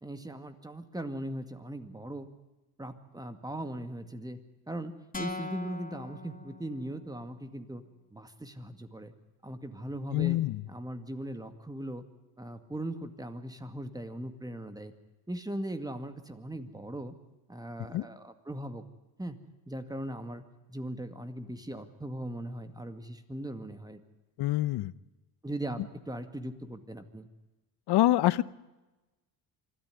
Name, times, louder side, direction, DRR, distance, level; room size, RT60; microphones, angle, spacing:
voice 1, 0.0-2.3 2.8-4.4 4.7-7.8 8.1-9.1 9.4-10.4 10.7-12.0 12.4-14.9 15.3-17.1 17.5-18.8 19.2-19.4 19.7-20.4 20.7-24.0 25.4-27.3, right 1 dB, 10° right, 8 dB, 2.1 m, -39 dB
sound 1, 5.1-7.2, left 3 dB, 20° left, 2.6 m, -41 dB
voice 2, 10.1-10.6 17.9-18.0 24.4-24.9 27.9-28.4, left 15 dB, 65° left, 18 dB, 0.9 m, -25 dB
25.0 x 13.5 x 9.3 m, 1.1 s
cardioid pair, 95°, 42 cm